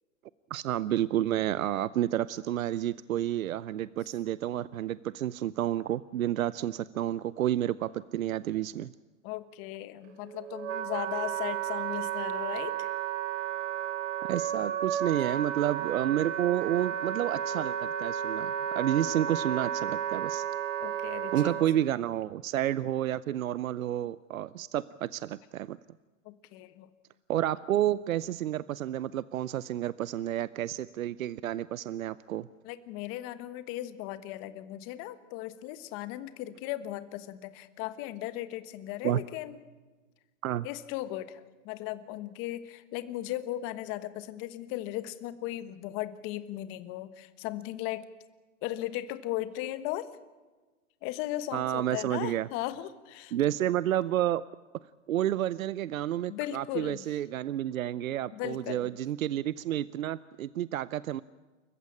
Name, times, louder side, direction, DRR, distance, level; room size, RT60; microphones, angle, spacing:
voice 1, 0.5-8.9 14.3-20.4 21.3-25.8 27.3-32.5 39.0-39.2 40.4-40.7 51.5-52.5 53.3-54.4 55.1-61.2, right 12 dB, 80° right, 18 dB, 0.7 m, -30 dB
voice 2, 9.2-12.9 20.8-21.6 26.2-26.9 32.6-39.6 40.6-48.0 48.6-50.1 51.0-53.3 56.3-57.0 58.3-58.9, left 14 dB, 30° left, 13 dB, 1.3 m, -37 dB
Wind instrument woodwind instrument, 10.0-21.7, right 10 dB, 60° right, 3.4 m, -33 dB
28.5 x 15.0 x 8.6 m, 1.3 s
hypercardioid pair, 145°, 40 cm